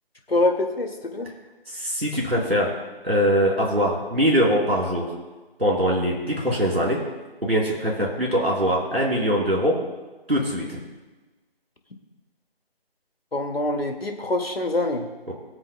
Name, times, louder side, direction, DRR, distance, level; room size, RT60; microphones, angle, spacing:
voice 1, 0.3-1.3 13.3-15.1, left 2 dB, 75° left, 3 dB, 2.0 m, -25 dB
voice 2, 1.7-2.7 3.0-5.0 5.6-7.0 7.4-9.8 10.3-10.8 15.3-15.4, equal, 85° right, -4 dB, 4.0 m, -22 dB
23.5 x 8.1 x 2.2 m, 1.2 s
figure-of-eight pair, 160°, 30 cm